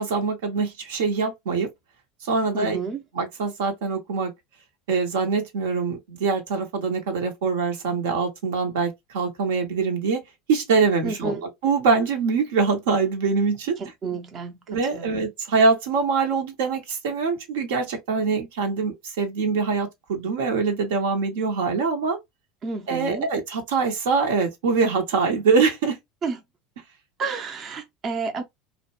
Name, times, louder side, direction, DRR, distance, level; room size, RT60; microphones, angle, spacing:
voice 1, 0.0-1.7 2.2-2.8 3.1-4.3 4.9-10.2 10.5-13.8 14.7-22.2 22.9-26.0, right 4 dB, 75° right, 0.7 m, -24 dB
voice 2, 2.5-3.0 11.0-11.4 13.8-14.5 14.9-15.2 22.6-23.3 26.2-26.4 27.2-28.4, right 4 dB, 40° right, 0.5 m, -30 dB
2.5 x 2.1 x 2.9 m
hypercardioid pair, 75°, 0 cm